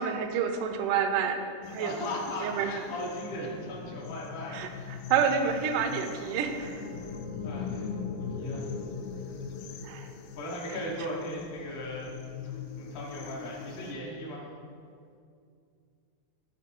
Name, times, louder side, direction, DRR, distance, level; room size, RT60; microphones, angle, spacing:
voice 1, 0.0-1.9 2.4-2.7 4.5-6.9 9.8-10.1, right 7 dB, 80° right, 7 dB, 2.0 m, -29 dB
sound 1, 1.6-13.9, left 6 dB, 85° left, 2.3 m, -41 dB
voice 2, 1.8-5.0 7.0-7.1 7.4-8.7 10.4-12.1 12.4-14.5, left 1 dB, 65° left, -5 dB, 1.2 m, -38 dB
12.0 x 4.1 x 4.4 m, 2.4 s
omnidirectional pair, 3.9 m